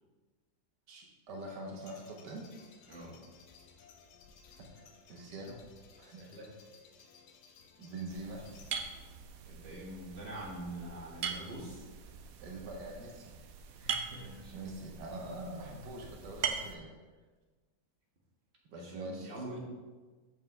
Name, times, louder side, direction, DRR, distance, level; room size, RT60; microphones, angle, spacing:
voice 1, 0.9-2.5 4.6-5.6 6.0-6.2 7.8-8.5 12.4-13.3 14.1-16.9 18.7-19.3, right 2 dB, 90° right, 0 dB, 1.7 m, -44 dB
sound 1, 1.3-9.1, left 6 dB, 80° left, 1.4 m, -59 dB
voice 2, 6.2-6.5 9.5-11.8 13.8-14.5 18.7-19.6, right 1 dB, 40° right, -5 dB, 2.1 m, -44 dB
sound 2, 8.1-16.7, right 7 dB, 65° right, 1.0 m, -42 dB
7.5 x 7.1 x 3.4 m, 1.3 s
omnidirectional pair, 1.8 m